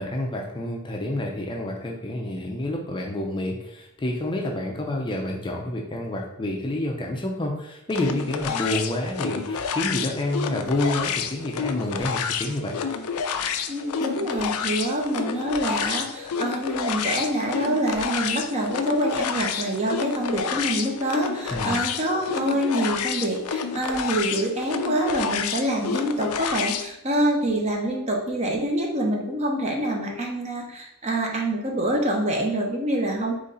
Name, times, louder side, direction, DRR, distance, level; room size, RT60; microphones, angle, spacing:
voice 1, 0.0-12.8 21.5-21.8, left 1 dB, 20° left, 0 dB, 0.5 m, -28 dB
sound 1, 7.9-26.9, left 6 dB, 85° left, 0.4 m, -29 dB
voice 2, 13.7-33.3, right 1 dB, 30° right, 0 dB, 0.8 m, -26 dB
4.1 x 3.1 x 3.8 m, 0.83 s
head